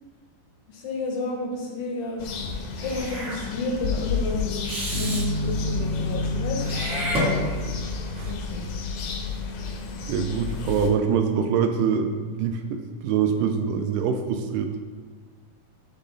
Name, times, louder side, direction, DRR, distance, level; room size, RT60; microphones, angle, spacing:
voice 1, 0.7-2.2 2.7-7.2 8.2-8.6, left 3 dB, 70° left, 0 dB, 1.4 m, -31 dB
sound 1, 2.2-10.9, left 4 dB, 90° left, 2.5 m, -32 dB
Meow / Hiss, 2.8-3.4 4.6-5.3 6.6-7.8, equal, 35° right, 0.9 m, -29 dB
sound 2, 4.9-9.1, left 1 dB, 65° right, 2.1 m, -31 dB
voice 2, 10.1-14.8, right 6 dB, 85° right, 6 dB, 2.1 m, -24 dB
9.9 x 4.0 x 3.8 m, 1.4 s
omnidirectional pair, 3.8 m